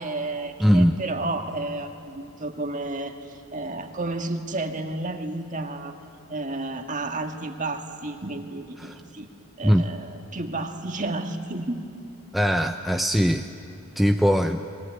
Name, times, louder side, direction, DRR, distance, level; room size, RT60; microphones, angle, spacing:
voice 1, 0.0-6.0 6.3-9.3 9.6-11.8, right 2 dB, 35° right, 5 dB, 1.9 m, -31 dB
voice 2, 0.6-1.0 8.8-9.0 9.6-9.8 12.3-13.5 14.0-14.6, equal, ahead, 4 dB, 0.6 m, -20 dB
28.5 x 22.0 x 9.4 m, 2.7 s
head